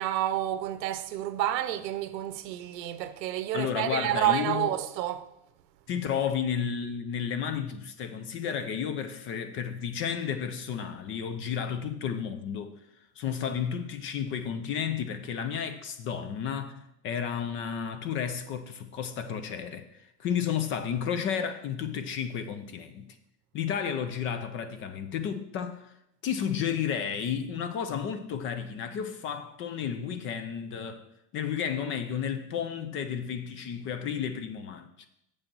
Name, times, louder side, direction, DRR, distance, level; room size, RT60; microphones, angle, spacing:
voice 1, 0.0-5.3, right 12 dB, 85° right, 1.0 m, -29 dB
voice 2, 3.5-4.7 5.9-12.8 13.2-23.1 23.5-25.9 26.2-31.1 31.3-35.1, left 8 dB, 25° left, 0.5 m, -32 dB
7.5 x 6.4 x 6.0 m
supercardioid pair, 145°, 48 cm